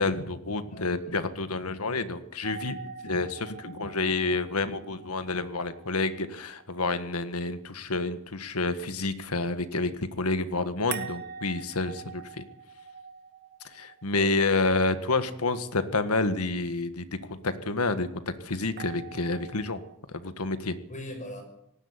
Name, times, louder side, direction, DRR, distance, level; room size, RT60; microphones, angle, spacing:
voice 1, 0.0-12.4 13.7-19.8 20.1-20.8, left 3 dB, 90° left, 11 dB, 1.7 m, -29 dB
voice 2, 0.7-1.3 14.2-14.6 20.9-21.4, left 1 dB, 35° left, 5 dB, 5.8 m, -41 dB
sound 1, 2.4-7.4 10.9-15.0 18.8-20.0, right 6 dB, 50° right, 2.1 m, -44 dB
18.5 x 15.5 x 9.9 m, 0.76 s
head